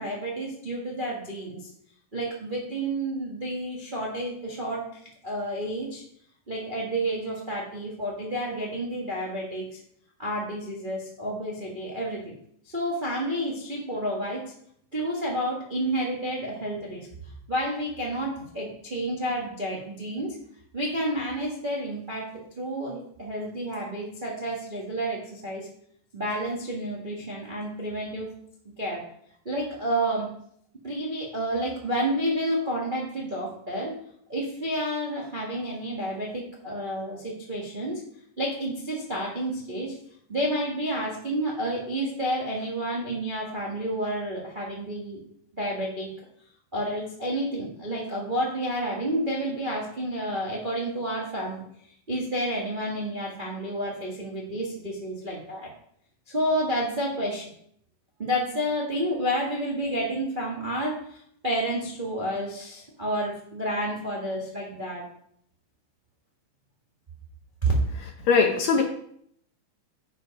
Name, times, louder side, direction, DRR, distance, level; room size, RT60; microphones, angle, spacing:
voice 1, 0.0-1.6 2.1-4.8 5.2-6.0 6.5-9.8 10.2-12.3 12.7-14.5 14.9-17.1 17.5-20.4 20.7-25.7 26.1-28.3 28.6-29.0 29.4-30.3 30.8-34.0 34.3-38.0 38.4-39.9 40.3-45.2 45.5-46.1 46.7-51.6 52.1-55.7 56.3-57.5 58.2-65.0 67.6-67.7, right 1 dB, 65° right, -4 dB, 0.5 m, -30 dB
voice 2, 68.3-68.8, left 5 dB, 70° left, 2 dB, 1.7 m, -20 dB
8.4 x 5.6 x 5.2 m, 0.67 s
omnidirectional pair, 4.0 m